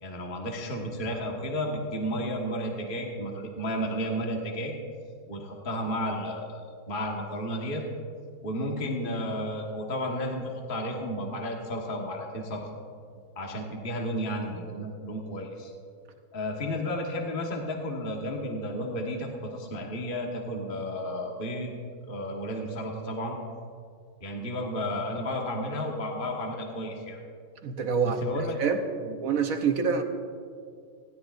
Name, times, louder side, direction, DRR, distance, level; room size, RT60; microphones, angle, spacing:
voice 1, 0.0-4.7 5.3-7.8 8.4-12.6 13.3-15.7 16.3-21.7 22.1-23.4 24.2-27.2 28.0-28.6 29.0-29.2, equal, 30° left, 0 dB, 1.5 m, -32 dB
voice 2, 27.6-28.2 28.6-28.8 29.2-30.0, right 6 dB, 55° right, 6 dB, 1.1 m, -26 dB
20.0 x 16.5 x 2.6 m, 2.2 s
omnidirectional pair, 2.1 m